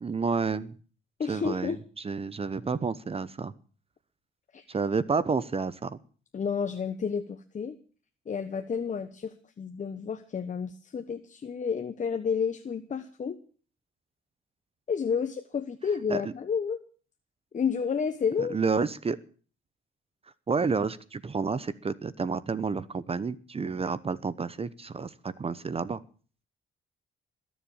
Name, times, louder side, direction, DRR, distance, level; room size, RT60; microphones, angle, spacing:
voice 1, 0.0-0.7 1.3-1.8 2.0-3.5 4.7-6.0 16.1-16.3 18.4-19.2 20.5-26.0, right 5 dB, 30° right, 17 dB, 0.9 m, -30 dB
voice 2, 1.2-1.8 4.5-4.7 6.3-7.8 8.3-13.4 14.9-16.8 17.5-18.6, left 6 dB, 40° left, 9 dB, 1.2 m, -31 dB
21.5 x 7.3 x 8.7 m, 0.42 s
cardioid pair, 90°, 20 cm